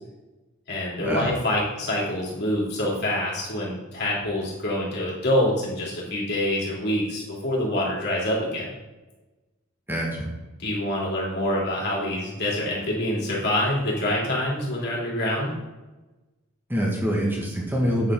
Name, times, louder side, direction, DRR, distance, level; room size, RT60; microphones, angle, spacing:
voice 1, 0.7-8.7 10.6-15.5, left 1 dB, 55° left, -4 dB, 3.3 m, -26 dB
voice 2, 9.9-10.3 16.7-18.1, equal, 10° right, -2 dB, 1.9 m, -25 dB
9.0 x 7.7 x 3.8 m, 1.1 s
head